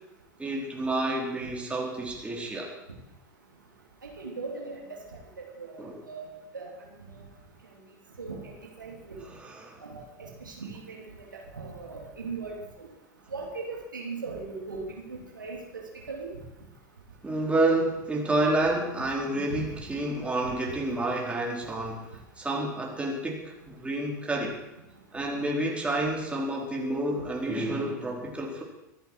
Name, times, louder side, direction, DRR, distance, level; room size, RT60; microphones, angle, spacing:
voice 1, 0.4-2.7 5.8-6.0 9.3-9.8 17.2-22.1 22.4-24.6 25.1-28.6, right 2 dB, 10° right, -1 dB, 4.4 m, -29 dB
voice 2, 4.0-4.8 5.6-6.7 8.2-8.5 8.8-9.2 9.8-11.0 11.5-12.9 13.3-14.8 15.1-15.8 16.1-16.3 19.5-19.6, right 4 dB, 80° right, -1 dB, 3.1 m, -38 dB
24.0 x 11.0 x 4.8 m, 0.93 s
figure-of-eight pair, 80°, 10 cm